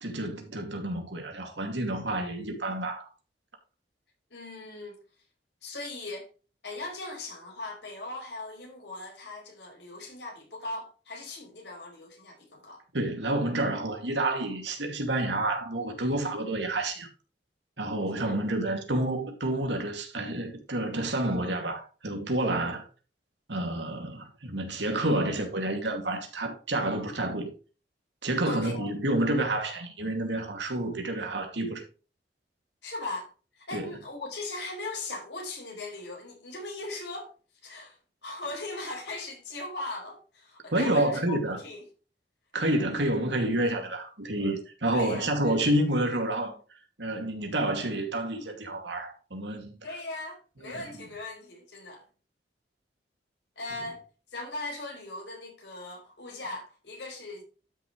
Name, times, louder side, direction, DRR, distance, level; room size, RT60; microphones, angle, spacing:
voice 1, 0.0-3.1 12.9-17.1 17.8-22.9 23.5-27.5 28.2-31.8 33.7-33.9 40.7-41.6 42.5-46.6 47.0-49.8 50.6-50.8, right 1 dB, 90° right, 2.6 m, -29 dB
voice 2, 4.3-5.0 5.6-6.3 6.6-12.8 18.2-18.5 28.4-28.9 32.8-37.3 37.6-41.8 44.9-45.6 49.8-52.0 53.6-54.0 54.3-57.4, left 2 dB, 75° left, 4.9 m, -39 dB
12.5 x 6.5 x 3.3 m
head